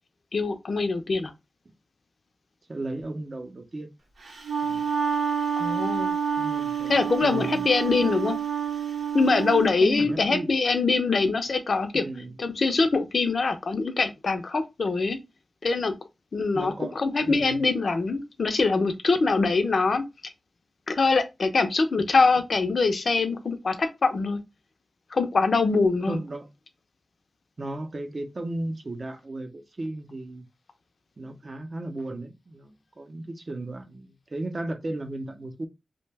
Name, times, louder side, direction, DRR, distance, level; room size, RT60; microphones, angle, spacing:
voice 1, 0.3-1.3 5.6-6.2 6.9-8.4 9.1-12.0 12.4-15.2 15.6-15.9 16.3-20.3 20.9-24.4 25.1-26.2, left 3 dB, 60° left, 0.5 m, -23 dB
voice 2, 2.7-3.9 4.6-4.9 6.4-7.7 9.6-10.5 11.9-12.4 16.5-17.7 26.1-26.5 27.6-30.5 31.2-35.7, right 2 dB, 40° right, 0.5 m, -35 dB
Wind instrument woodwind instrument, 4.3-9.7, right 7 dB, 85° right, 0.7 m, -28 dB
2.7 x 2.1 x 3.2 m
wide cardioid pair, 100°, 0 cm